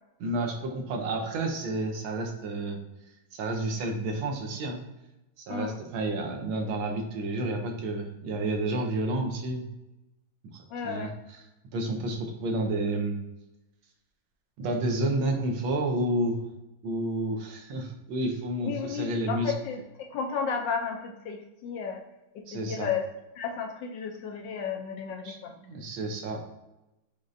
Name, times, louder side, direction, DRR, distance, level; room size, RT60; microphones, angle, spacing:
voice 1, 0.2-2.8 3.3-4.8 5.4-9.6 10.5-11.4 11.7-13.2 14.6-16.4 16.8-19.5 22.5-22.9 25.2-26.4, right 2 dB, 80° right, 3 dB, 1.5 m, -30 dB
voice 2, 10.7-11.1 18.6-19.8 20.1-22.0 22.3-23.1 23.4-25.5, left 6 dB, 75° left, 2 dB, 1.1 m, -33 dB
5.2 x 3.1 x 2.5 m, 0.96 s
omnidirectional pair, 2.2 m